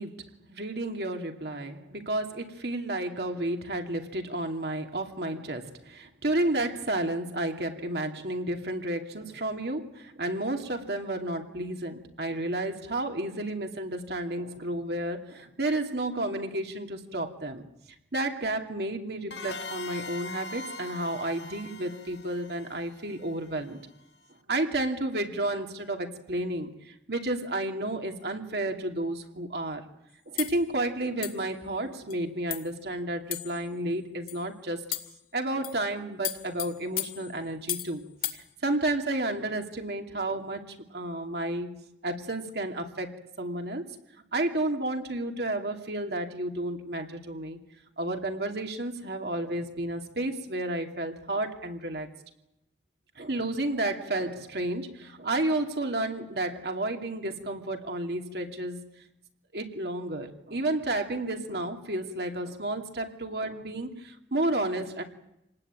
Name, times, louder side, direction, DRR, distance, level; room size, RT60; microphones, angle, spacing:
voice 1, 0.0-17.7 18.1-23.8 24.5-29.8 30.3-34.8 35.3-38.1 38.3-40.6 40.9-41.7 42.0-43.9 44.3-47.6 48.0-52.1 53.2-58.8 59.5-65.0, right 1 dB, 65° right, 4 dB, 2.7 m, -31 dB
sound 1, 19.3-23.8, left 3 dB, 85° left, 1.2 m, -41 dB
sound 2, 30.4-30.6 31.2-31.5 32.1-32.2 32.5-32.7 33.3-33.7 34.3-34.4 34.9-35.2 35.6-35.8 36.2-37.9 38.2-38.4, left 12 dB, 55° left, 2.2 m, -35 dB
27.5 x 19.5 x 9.0 m, 0.86 s
head